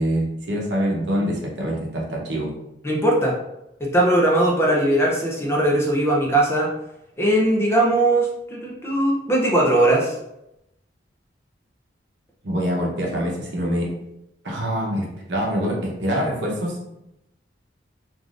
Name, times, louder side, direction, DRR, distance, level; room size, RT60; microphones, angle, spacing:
voice 1, 0.0-2.5 12.4-13.9 14.4-16.8, equal, 70° right, -2 dB, 0.8 m, -25 dB
voice 2, 2.8-3.4 3.8-6.7 7.2-10.1, right 1 dB, 15° left, -2 dB, 0.5 m, -19 dB
3.5 x 2.4 x 2.4 m, 0.85 s
head